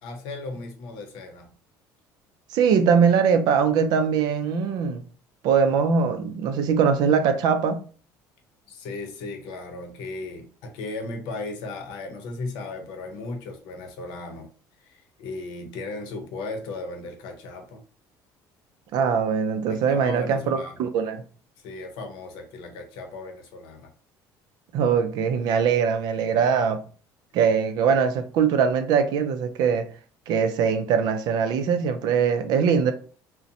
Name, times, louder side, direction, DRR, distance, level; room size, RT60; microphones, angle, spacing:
voice 1, 0.0-1.5 8.7-14.5 14.8-17.8 19.7-20.9 21.6-23.9, left 2 dB, 80° left, 0.7 m, -36 dB
voice 2, 2.5-5.0 5.4-7.8 18.9-21.2 24.7-26.8 27.3-29.9 30.3-32.9, right 6 dB, 60° right, 0.4 m, -22 dB
2.5 x 2.1 x 2.7 m
cardioid pair, 150°, 8 cm